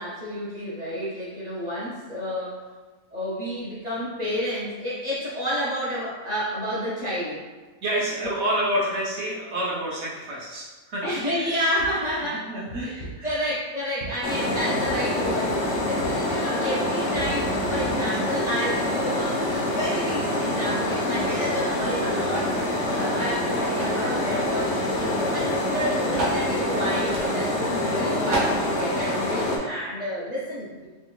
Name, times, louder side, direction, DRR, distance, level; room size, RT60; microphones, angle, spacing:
voice 1, 0.0-2.6 3.1-7.4 11.0-12.5 12.8-24.7 25.2-30.9, equal, 35° right, -8 dB, 0.8 m, -30 dB
voice 2, 7.8-11.0 11.3-11.5 12.3-12.9 13.2-13.4 25.0-25.3, right 1 dB, 60° right, -5 dB, 0.9 m, -28 dB
sound 1, 11.8-12.2 12.7-13.4 14.0-16.4 17.1-17.9, right 1 dB, 80° left, 1.3 m, -39 dB
sound 2, 14.2-29.6, left 1 dB, 65° left, 0.8 m, -26 dB
sound 3, 23.8-24.1 25.0-25.1 25.3-25.4 26.1-26.4 27.1-27.3 27.8-27.9 28.3-28.6, right 2 dB, 75° right, 1.4 m, -28 dB
3.4 x 2.4 x 3.0 m, 1.3 s
omnidirectional pair, 1.4 m